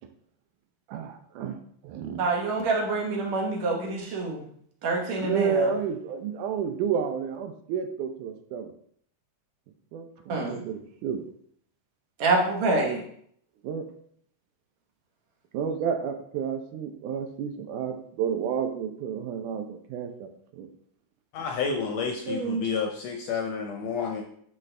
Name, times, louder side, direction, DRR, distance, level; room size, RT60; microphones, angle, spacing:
voice 1, 0.9-1.6 1.8-2.2 5.2-8.7 9.9-11.2 13.6-13.9 15.5-20.7, right 7 dB, 80° right, 6 dB, 2.2 m, -31 dB
voice 2, 2.2-4.4 4.8-5.7 10.3-10.6 12.2-13.0 22.3-22.7, right 3 dB, 65° right, 0 dB, 2.3 m, -26 dB
voice 3, 21.3-24.2, left 5 dB, 70° left, 2 dB, 1.7 m, -30 dB
10.5 x 4.1 x 3.3 m, 0.64 s
omnidirectional pair, 3.6 m